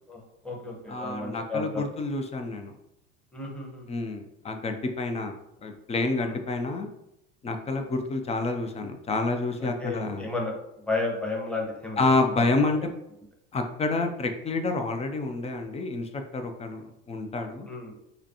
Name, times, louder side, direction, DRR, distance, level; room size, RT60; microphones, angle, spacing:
voice 1, 0.1-1.9 3.3-3.9 6.2-6.4 7.7-7.9 9.6-12.5 17.6-17.9, left 2 dB, 5° left, -2 dB, 1.0 m, -33 dB
voice 2, 0.9-2.7 3.9-5.4 5.6-6.9 7.4-10.3 12.0-12.9 13.5-17.7, left 3 dB, 20° left, 6 dB, 0.5 m, -28 dB
5.0 x 2.2 x 2.9 m, 0.83 s
hypercardioid pair, 95°, 36 cm